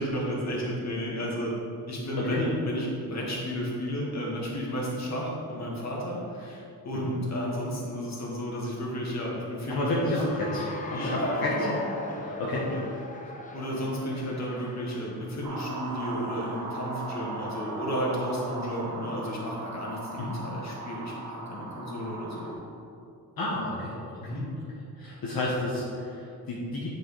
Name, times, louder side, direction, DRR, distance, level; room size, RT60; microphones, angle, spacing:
voice 1, 0.0-1.5 1.9-10.2 10.9-11.8 12.1-12.2 12.5-12.8 13.5-22.6 24.2-24.5, equal, 45° left, -4 dB, 2.0 m, -32 dB
voice 2, 9.7-11.5 12.2-12.7 20.2-20.4 23.4-24.4 25.0-26.9, left 1 dB, 65° left, -6 dB, 1.5 m, -31 dB
Cheering / Applause, 10.2-15.4, left 2 dB, 20° left, 0.8 m, -40 dB
sound 1, 15.4-22.5, right 2 dB, 60° right, 1.8 m, -38 dB
9.3 x 5.1 x 4.8 m, 2.6 s
wide cardioid pair, 150°, 37 cm